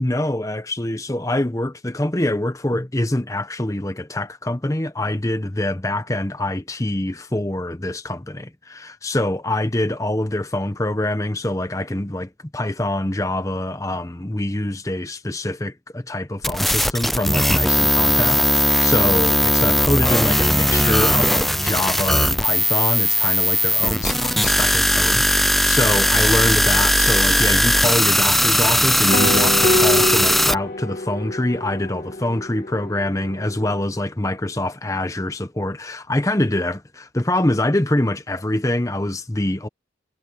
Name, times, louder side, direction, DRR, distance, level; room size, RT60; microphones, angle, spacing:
voice 1, 0.0-39.7, left 1 dB, 20° left, 0.9 m, -24 dB
sound 1, 16.4-30.5, left 1 dB, ahead, 0.4 m, -18 dB
sound 2, 29.1-33.8, left 1 dB, 50° left, 2.0 m, -25 dB
head